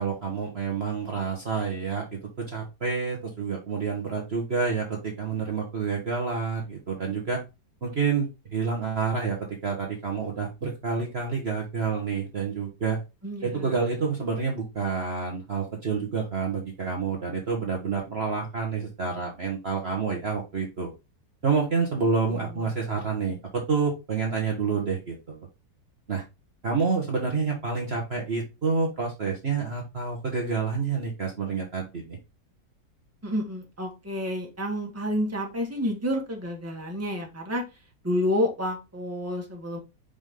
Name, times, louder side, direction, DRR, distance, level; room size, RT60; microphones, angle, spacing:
voice 1, 0.0-7.4 7.8-13.0 13.4-20.9 21.4-25.5 26.1-26.2 26.6-32.2, right 5 dB, 40° right, 0 dB, 1.4 m, -28 dB
voice 2, 13.2-13.7 22.3-22.6 33.2-37.6 38.0-39.8, left 1 dB, 10° right, 1 dB, 1.8 m, -29 dB
5.3 x 5.0 x 3.8 m, 0.25 s
omnidirectional pair, 1.9 m